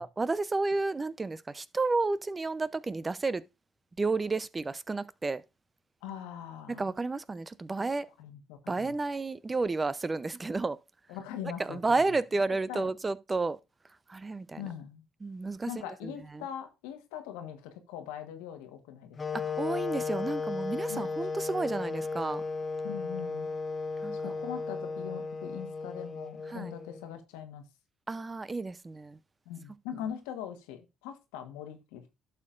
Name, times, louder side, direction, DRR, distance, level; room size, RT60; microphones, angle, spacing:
voice 1, 0.0-3.4 4.0-5.4 6.7-8.1 8.7-10.8 11.6-13.6 14.1-14.6 15.2-16.4 19.3-22.4 24.0-24.3 26.5-26.7 28.1-29.2, right 3 dB, 25° right, 0.6 m, -31 dB
voice 2, 6.0-6.9 8.2-8.9 11.1-12.2 12.7-12.9 14.6-15.0 15.7-19.4 20.9-21.1 22.8-23.5 24.2-27.7 29.5-32.1, left 9 dB, 90° left, 1.3 m, -41 dB
sound 1, 19.2-27.2, left 4 dB, 35° left, 1.0 m, -35 dB
11.5 x 6.6 x 2.5 m
supercardioid pair, 65°, 0 cm